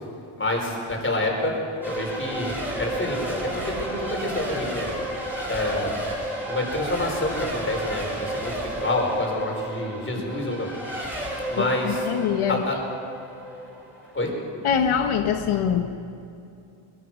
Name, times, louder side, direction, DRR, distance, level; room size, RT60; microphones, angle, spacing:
voice 1, 0.4-2.5 2.8-4.9 5.5-5.9 6.5-10.7 11.5-12.1 12.5-12.8 14.1-14.3, left 2 dB, 25° left, 0 dB, 5.1 m, -27 dB
Race car auto racing / Accelerating revving vroom / Mechanisms, 1.8-14.3, right 1 dB, 5° right, 6.6 m, -32 dB
voice 2, 11.5-12.6 14.6-15.9, left 8 dB, 85° left, 5 dB, 1.3 m, -24 dB
23.0 x 23.0 x 6.3 m, 2.6 s
wide cardioid pair, 140°, 48 cm